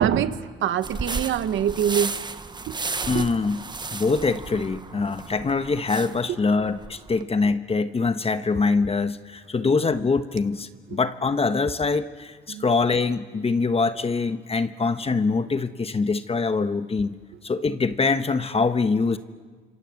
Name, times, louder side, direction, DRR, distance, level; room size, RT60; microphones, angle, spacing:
voice 1, 0.0-2.2 2.7-2.8 3.1-3.3 6.3-6.4 12.5-12.6, right 9 dB, 75° right, 12 dB, 1.3 m, -24 dB
sound 1, 0.8-7.2, right 3 dB, 20° right, 1.1 m, -34 dB
voice 2, 3.1-3.6 3.9-17.2 17.4-19.2, left 4 dB, 30° left, 10 dB, 1.2 m, -24 dB
27.5 x 26.5 x 7.8 m, 1.5 s
cardioid pair, 90°, 20 cm